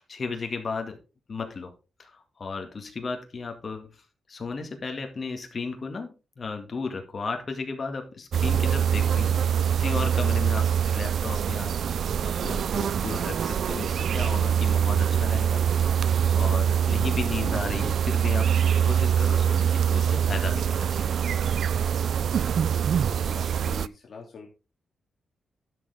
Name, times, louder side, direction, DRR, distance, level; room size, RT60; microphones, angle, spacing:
voice 1, 0.1-1.0 1.3-1.7 2.0-4.0 4.3-11.7 12.2-18.5 18.8-21.1, left 4 dB, 35° left, 4 dB, 2.0 m, -35 dB
sound 1, 8.3-23.9, right 8 dB, 65° right, 0.4 m, -24 dB
voice 2, 23.1-24.5, left 4 dB, 50° left, -1 dB, 2.4 m, -44 dB
12.0 x 6.9 x 3.5 m, 0.31 s
wide cardioid pair, 140°, 0 cm